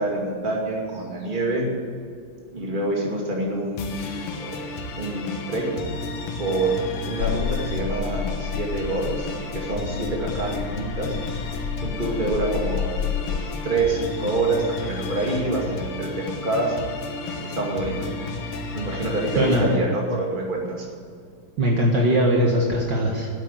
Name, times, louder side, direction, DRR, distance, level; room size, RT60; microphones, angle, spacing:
voice 1, 0.0-1.7 2.5-3.9 4.4-4.6 5.0-5.9 6.4-6.8 7.1-11.2 11.8-13.0 13.3-16.8 17.4-18.1 18.7-20.9, right 2 dB, 20° right, -1 dB, 2.3 m, -26 dB
sound 1, 3.8-19.8, left 3 dB, 90° left, 2.2 m, -33 dB
sound 2, 7.2-13.4, left 9 dB, 70° left, 1.2 m, -30 dB
voice 2, 19.4-19.7 21.6-23.3, right 1 dB, 55° right, -1 dB, 2.0 m, -20 dB
10.5 x 8.5 x 9.2 m, 2.3 s
omnidirectional pair, 2.4 m